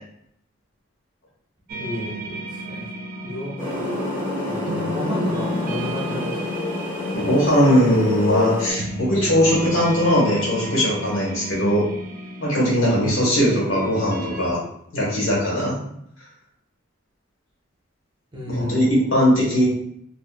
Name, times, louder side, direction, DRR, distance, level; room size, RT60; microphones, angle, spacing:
sound 1, 1.7-14.5, equal, 45° right, 0.4 m, -33 dB
voice 1, 1.8-2.9 3.2-3.6 4.4-6.4 18.3-18.9, equal, 25° right, -3 dB, 0.7 m, -31 dB
sound 2, 3.6-8.7, left 2 dB, 15° left, 1.2 m, -27 dB
voice 2, 7.1-11.8 12.4-14.6 14.9-15.8 18.5-19.7, equal, 75° left, -5 dB, 1.4 m, -19 dB
3.5 x 2.5 x 2.4 m, 0.73 s
head